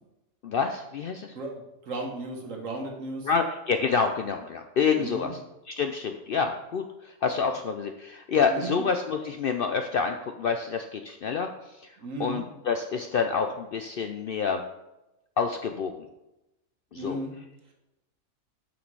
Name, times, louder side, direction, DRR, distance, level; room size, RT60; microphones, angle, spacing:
voice 1, 0.4-1.3 3.2-5.4 5.7-11.5 12.2-14.6 15.4-15.9 16.9-17.2, left 5 dB, 70° left, 6 dB, 0.5 m, -27 dB
voice 2, 1.8-3.3 5.0-5.3 8.5-8.8 12.0-12.4 16.9-17.3, right 2 dB, 70° right, 1 dB, 1.5 m, -34 dB
6.4 x 6.1 x 4.6 m, 0.95 s
omnidirectional pair, 1.5 m